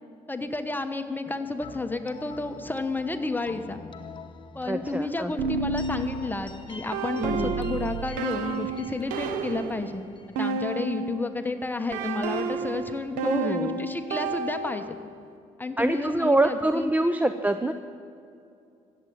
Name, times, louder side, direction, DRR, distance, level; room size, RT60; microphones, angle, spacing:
voice 1, 0.3-3.8 4.5-10.1 10.4-15.0 15.6-16.9, left 3 dB, 15° left, 7 dB, 1.1 m, -31 dB
sound 1, 1.6-11.4, left 4 dB, 35° left, 1.1 m, -45 dB
voice 2, 4.7-5.3 7.2-7.5 13.2-13.8 15.8-17.7, right 2 dB, 10° right, 9 dB, 0.6 m, -25 dB
sound 2, 5.4-11.3 11.9-15.1, right 4 dB, 85° right, 0.8 m, -31 dB
15.5 x 7.8 x 9.2 m, 2.5 s
supercardioid pair, 75°, 14 cm